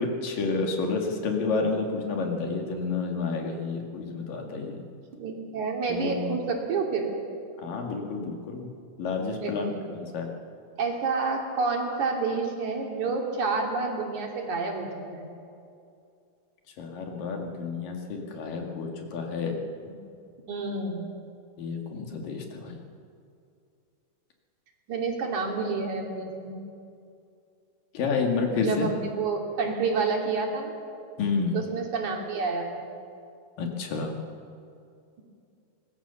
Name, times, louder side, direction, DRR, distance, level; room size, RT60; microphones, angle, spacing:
voice 1, 0.0-4.8 5.9-6.4 7.6-8.7 9.0-10.3 16.8-19.5 21.6-22.8 27.9-28.9 31.2-31.6 33.6-34.1, left 4 dB, 70° left, 2 dB, 3.8 m, -30 dB
voice 2, 5.2-7.1 9.4-9.8 10.8-15.3 19.9-20.0 20.5-21.0 24.9-26.6 28.5-30.7 31.5-32.9, right 4 dB, 60° right, 1 dB, 3.9 m, -29 dB
24.5 x 19.5 x 7.1 m, 2.5 s
omnidirectional pair, 4.1 m